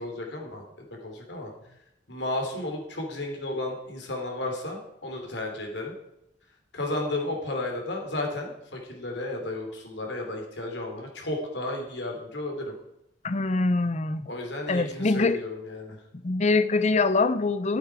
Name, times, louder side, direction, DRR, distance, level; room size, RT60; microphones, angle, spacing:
voice 1, 0.0-1.5 2.1-5.9 6.7-12.7 14.3-16.0, left 2 dB, 70° left, 3.2 m, -33 dB
voice 2, 13.2-14.2 14.7-15.4 16.2-17.8, left 3 dB, 40° left, 0.6 m, -24 dB
12.5 x 8.7 x 4.8 m
head